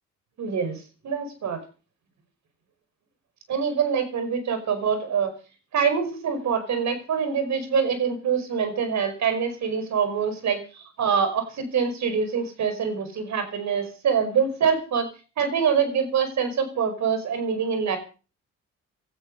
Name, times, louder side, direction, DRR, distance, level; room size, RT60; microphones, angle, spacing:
voice 1, 0.4-0.8 1.0-1.6 3.5-5.3 5.7-15.1 15.4-18.0, right 6 dB, 65° right, 9 dB, 5.3 m, -25 dB
17.5 x 13.0 x 5.4 m, 0.37 s
cardioid pair, 90°, 30 cm